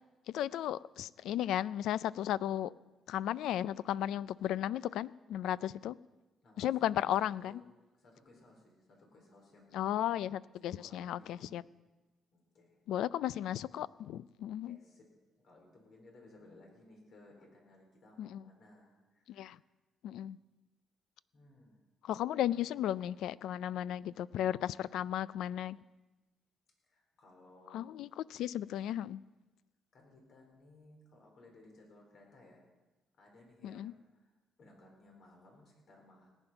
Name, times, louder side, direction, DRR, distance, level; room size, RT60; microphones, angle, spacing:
voice 1, 0.3-2.7 3.1-6.0 6.6-7.6 9.7-11.6 12.9-14.8 18.2-18.4 19.3-19.6 20.0-20.4 22.0-25.8 27.7-29.2 33.6-33.9, left 11 dB, 85° left, 19 dB, 0.3 m, -35 dB
voice 2, 6.4-7.6 7.9-9.9 10.6-11.5 12.3-12.8 14.6-19.7 21.3-21.8 22.4-22.6 22.9-23.1 26.8-27.8 29.9-32.6 33.2-34.3 34.6-36.3, left 2 dB, 65° left, 1 dB, 4.6 m, -60 dB
18.5 x 9.1 x 5.8 m, 1.1 s
cardioid pair, 90°, 0 cm